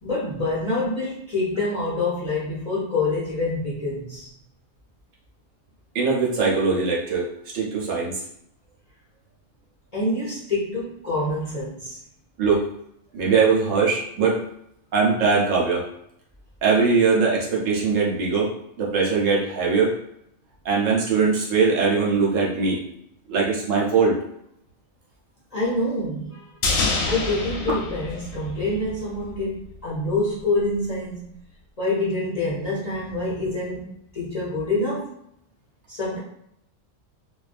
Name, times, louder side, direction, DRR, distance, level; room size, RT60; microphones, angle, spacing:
voice 1, 0.0-4.3 9.9-12.0 25.5-26.5 27.0-31.4 31.8-35.1 35.9-36.2, left 2 dB, 40° left, -8 dB, 0.6 m, -26 dB
voice 2, 5.9-7.3 7.5-8.2 12.4-12.6 13.1-14.4 14.9-15.8 16.6-18.5 18.8-19.9 20.6-22.8 23.3-24.2, right 4 dB, 75° right, -3 dB, 1.1 m, -21 dB
sound 1, 26.6-29.0 29.3-29.4, left 3 dB, 90° left, 1.0 m, -26 dB
2.5 x 2.2 x 2.4 m, 0.75 s
omnidirectional pair, 1.4 m